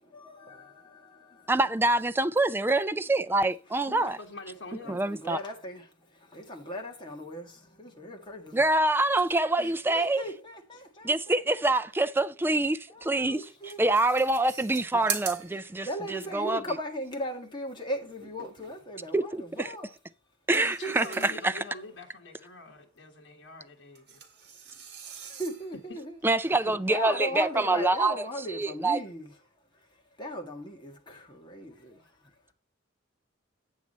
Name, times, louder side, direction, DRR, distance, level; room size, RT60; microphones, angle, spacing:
voice 1, 0.1-0.7 1.2-1.5 2.8-3.1 4.1-4.2 4.8-8.6 9.6-11.7 12.9-13.9 14.4-14.6 14.9-15.0 15.5-19.9 20.5-21.4 24.5-24.6 25.0-26.6 26.9-29.4 29.7-32.5, equal, 25° left, 1.6 m, -38 dB
voice 2, 1.5-4.2 4.9-5.4 8.5-10.2 11.0-13.4 13.8-16.6 19.1-19.4 20.5-21.6 26.2-28.1 28.5-29.0, right 2 dB, 10° right, 0.3 m, -25 dB
voice 3, 3.9-5.0 20.8-24.2 25.9-26.0 26.7-26.8, left 2 dB, 75° left, 1.5 m, -44 dB
sound 1, 13.0-13.1 13.4-16.1 18.0-19.1 20.5-21.7 23.9-25.9, right 7 dB, 60° right, 1.6 m, -41 dB
8.3 x 7.3 x 4.1 m
head